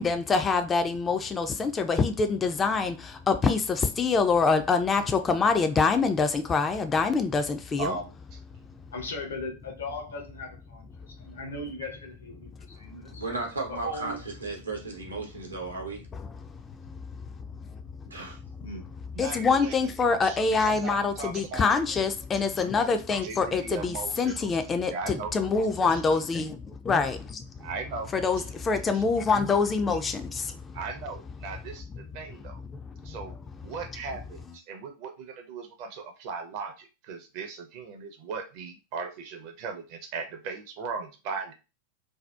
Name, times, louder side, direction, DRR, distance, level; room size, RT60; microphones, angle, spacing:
voice 1, 0.0-7.9 16.8-17.0 18.2-18.3 19.2-27.7 28.1-30.8 32.7-33.2, left 4 dB, 20° left, 0.3 m, -25 dB
voice 2, 7.8-8.4 19.1-19.9 20.2-21.6 22.6-22.7 23.2-24.5 24.8-25.3 25.9-26.0 27.6-28.1 28.4-28.5 28.9-29.0 30.7-32.6 33.0-33.4 33.6-41.5, right 4 dB, 45° right, 0.5 m, -38 dB
voice 3, 8.9-13.2 13.7-14.2 18.6-18.8, left 2 dB, 70° left, 0.6 m, -38 dB
voice 4, 13.1-16.0 18.1-18.4, right 3 dB, 80° right, 0.7 m, -35 dB
2.7 x 2.0 x 2.2 m
figure-of-eight pair, 90°, 0 cm